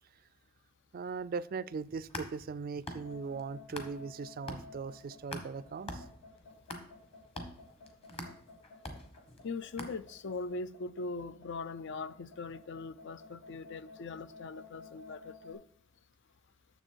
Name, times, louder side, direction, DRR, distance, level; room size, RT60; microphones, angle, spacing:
voice 1, 0.9-6.0, right 5 dB, 45° right, 0.3 m, -39 dB
sound 1, 1.8-4.2 4.5-10.4, left 1 dB, 25° left, 1.3 m, -45 dB
sound 2, 3.0-15.5, left 3 dB, 80° left, 3.8 m, -53 dB
voice 2, 9.4-15.6, left 3 dB, 55° left, 0.5 m, -41 dB
10.0 x 7.0 x 4.6 m
head